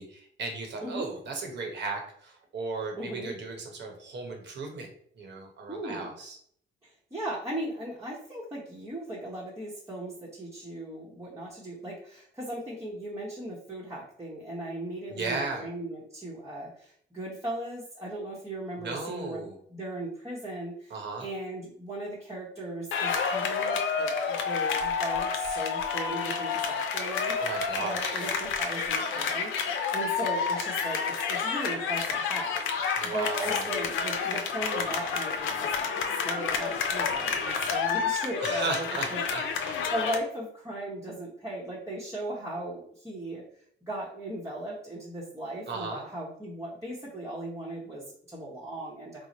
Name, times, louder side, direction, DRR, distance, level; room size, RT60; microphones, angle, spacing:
voice 1, 0.0-6.4 15.1-15.7 18.8-19.6 20.9-21.3 27.4-28.3 33.0-33.7 38.4-39.8 45.7-46.0, right 3 dB, 60° right, 3 dB, 1.0 m, -36 dB
voice 2, 3.0-3.3 5.7-6.1 6.8-29.5 29.9-38.8 39.1-39.2 39.9-43.4 43.9-49.3, right 1 dB, 15° right, -7 dB, 0.9 m, -37 dB
sound 1, 22.9-40.2, left 6 dB, 80° left, 0.5 m, -29 dB
3.1 x 2.0 x 3.9 m, 0.63 s
cardioid pair, 90°, 20 cm